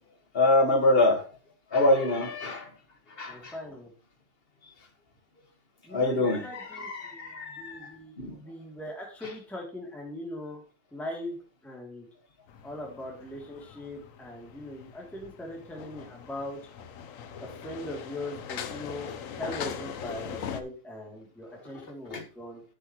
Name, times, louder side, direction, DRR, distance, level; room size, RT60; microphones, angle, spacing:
voice 1, 0.3-1.2 1.7-2.7 3.1-3.5 5.9-8.4 22.1-22.2, left 2 dB, 30° left, 5 dB, 1.5 m, -25 dB
voice 2, 3.3-3.9 5.8-10.6 10.9-11.4 11.6-12.1 12.6-16.6 17.4-22.6, left 1 dB, ahead, -1 dB, 2.4 m, -40 dB
sound 1, 12.5-20.6, left 7 dB, 60° left, 0.9 m, -41 dB
10.5 x 8.0 x 3.0 m, 0.35 s
omnidirectional pair, 2.2 m